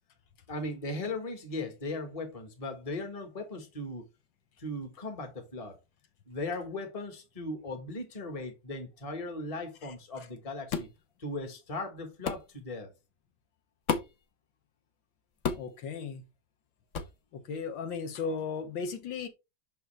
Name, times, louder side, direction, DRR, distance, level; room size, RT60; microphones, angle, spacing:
voice 1, 0.5-4.0 4.6-5.8 6.3-10.9 11.2-12.9, left 2 dB, 20° left, 1.2 m, -38 dB
sound 1, 10.7-11.0 12.3-12.5 13.9-14.2 15.4-15.8 16.9-17.2, left 6 dB, 50° left, 1.0 m, -32 dB
voice 2, 15.5-16.2 17.3-19.3, left 5 dB, 80° left, 1.8 m, -36 dB
6.3 x 5.4 x 3.2 m
omnidirectional pair, 2.1 m